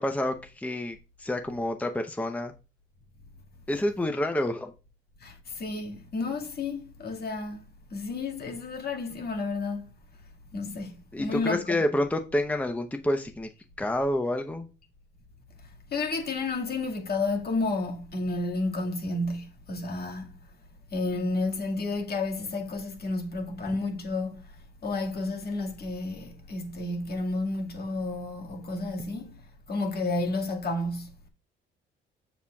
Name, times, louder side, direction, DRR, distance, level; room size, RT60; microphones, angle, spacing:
voice 1, 0.0-2.5 3.7-4.7 11.1-13.5 13.8-14.7, left 1 dB, 5° left, 0.8 m, -28 dB
voice 2, 5.2-7.6 7.9-9.9 10.5-11.8 15.9-20.3 20.9-31.1, left 2 dB, 55° left, 2.0 m, -31 dB
7.1 x 7.0 x 2.4 m
cardioid pair, 90°, 20 cm